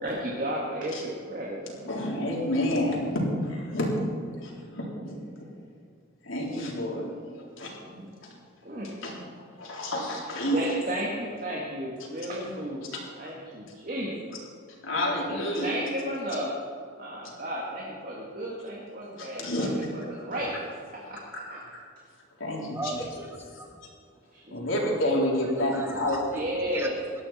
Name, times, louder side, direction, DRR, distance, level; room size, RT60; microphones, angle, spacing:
voice 1, 0.0-1.6 7.9-8.1 8.6-8.9 10.5-14.3 15.3-16.5 17.0-19.7 20.1-20.7 21.1-21.6 24.3-24.7 26.3-26.9, equal, 40° right, -3 dB, 2.0 m, -33 dB
voice 2, 1.7-3.9 4.4-5.2 6.2-7.7 8.2-8.3 8.7-10.8 12.0-12.1 12.9-13.3 14.8-15.8 19.1-19.9 21.0-21.8 22.4-23.0 24.5-26.5, left 1 dB, 70° left, -3 dB, 3.8 m, -30 dB
voice 3, 22.7-23.8 25.7-27.2, right 2 dB, 10° right, 3 dB, 1.4 m, -38 dB
18.5 x 13.0 x 4.3 m, 2.4 s
head